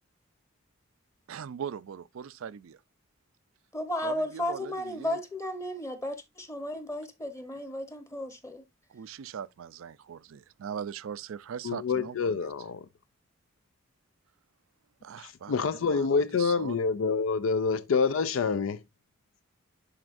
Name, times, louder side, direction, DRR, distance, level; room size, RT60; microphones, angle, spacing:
voice 1, 1.3-2.8 4.0-5.2 8.9-12.5 15.0-16.8, right 7 dB, 75° right, 0.4 m, -40 dB
voice 2, 3.7-8.6, left 1 dB, 15° left, 0.9 m, -34 dB
voice 3, 11.6-12.9 15.2-18.8, left 5 dB, 70° left, 0.4 m, -27 dB
10.5 x 4.3 x 2.5 m
head